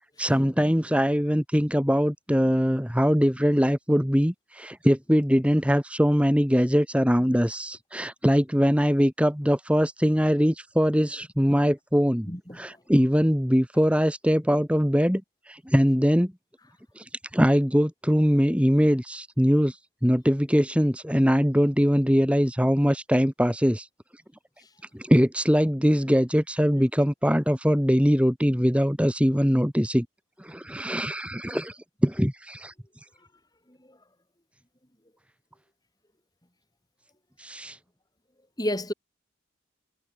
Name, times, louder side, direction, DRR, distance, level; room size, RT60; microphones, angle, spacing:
voice 1, 0.2-12.3 12.6-15.2 15.5-16.3 17.0-17.1 17.3-19.8 20.0-23.9 24.9-30.1 30.4-32.7 37.4-37.8, equal, 5° right, 5.8 m, -22 dB
voice 2, 12.3-12.8 24.6-24.7 26.7-26.8 33.7-34.0 38.6-38.9, left 1 dB, 20° left, 5.6 m, -32 dB
head